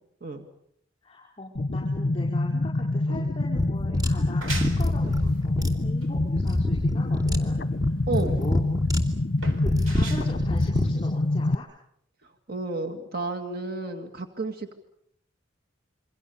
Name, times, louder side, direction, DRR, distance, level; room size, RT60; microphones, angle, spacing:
voice 1, 1.0-8.6 9.6-11.6, left 1 dB, 30° left, -2 dB, 4.9 m, -41 dB
sound 1, 1.6-11.6, left 2 dB, 50° left, 0.9 m, -26 dB
sound 2, 3.6-10.9, left 2 dB, 20° right, 2.7 m, -27 dB
sound 3, 4.2-11.5, right 3 dB, 85° right, 4.3 m, -41 dB
voice 2, 8.1-8.4 12.5-14.7, right 3 dB, 50° right, 5 dB, 2.1 m, -32 dB
27.5 x 24.5 x 7.0 m, 0.73 s
head